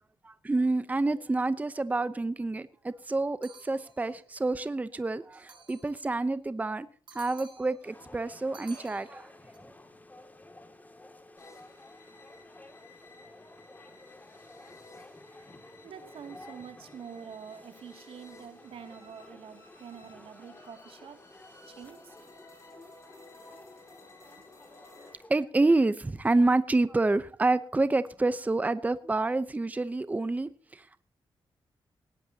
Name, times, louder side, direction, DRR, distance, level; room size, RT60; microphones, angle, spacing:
voice 1, 0.2-6.9 7.1-9.3 25.3-31.0, right 2 dB, 15° right, 0.7 m, -28 dB
sound 1, 3.4-4.2 5.3-6.1 7.1-7.9 8.5-9.6, right 5 dB, 60° right, 6.0 m, -53 dB
sound 2, 7.8-25.3, left 2 dB, 20° left, 2.4 m, -53 dB
sound 3, 11.4-25.1, left 2 dB, 35° left, 5.6 m, -56 dB
voice 2, 15.8-21.3 21.7-22.2, right 7 dB, 85° right, 2.5 m, -46 dB
19.5 x 18.0 x 2.9 m
wide cardioid pair, 120°, 9 cm